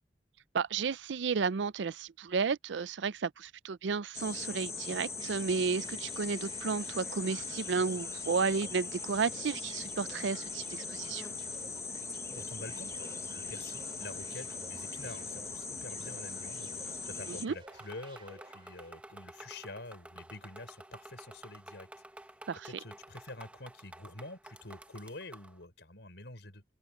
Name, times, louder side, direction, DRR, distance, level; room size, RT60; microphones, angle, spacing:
voice 1, 0.5-11.3 17.3-17.6 22.5-22.7, right 5 dB, 90° right, 0.5 m, -33 dB
sound 1, 4.1-17.5, left 4 dB, 15° left, 1.0 m, -40 dB
sound 2, 5.2-19.0, right 3 dB, 30° right, 2.6 m, -56 dB
voice 2, 12.3-21.9 22.6-26.6, left 2 dB, 70° left, 5.9 m, -47 dB
sound 3, 17.7-25.6, right 1 dB, 10° right, 1.3 m, -51 dB
open air
head